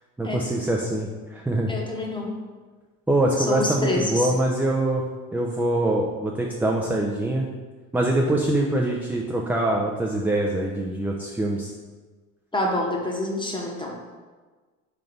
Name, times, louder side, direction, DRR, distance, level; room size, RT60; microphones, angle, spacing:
voice 1, 0.2-1.7 3.1-5.0 5.3-7.5 7.9-11.7, right 1 dB, 5° right, -1 dB, 0.4 m, -24 dB
voice 2, 1.7-2.3 3.4-4.3 12.5-14.0, left 1 dB, 10° left, 0 dB, 1.0 m, -27 dB
3.7 x 3.4 x 3.8 m, 1.4 s
hypercardioid pair, 60°, 41 cm